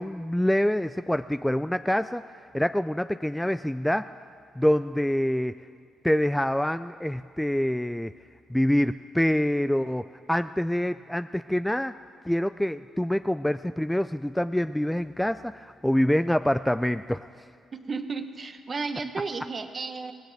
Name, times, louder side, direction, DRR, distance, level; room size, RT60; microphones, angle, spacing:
voice 1, 0.0-4.1 4.6-5.6 6.0-8.1 8.5-11.9 12.2-17.4, left 1 dB, 5° left, 11 dB, 0.3 m, -26 dB
voice 2, 17.7-20.1, right 4 dB, 35° right, 8 dB, 1.1 m, -33 dB
22.5 x 17.5 x 3.4 m, 2.2 s
cardioid pair, 90°, 0 cm